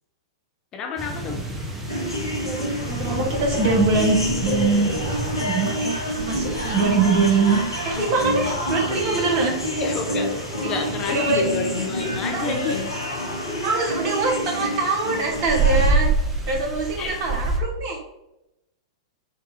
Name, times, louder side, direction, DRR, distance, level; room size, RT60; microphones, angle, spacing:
voice 1, 0.7-1.4 9.8-12.9 17.0-17.1, left 4 dB, 30° left, 3 dB, 0.7 m, -29 dB
sound 1, 1.0-17.6, right 3 dB, 15° right, 0.8 m, -29 dB
sound 2, 1.9-15.9, left 1 dB, 90° left, 1.6 m, -28 dB
voice 2, 2.4-4.9 5.3-9.6 10.6-10.7 11.1-11.5 12.3-12.8 13.6-16.1 16.4-18.0, right 3 dB, 40° right, 0 dB, 1.4 m, -23 dB
4.4 x 2.7 x 4.2 m, 0.89 s
figure-of-eight pair, 100°, 2 cm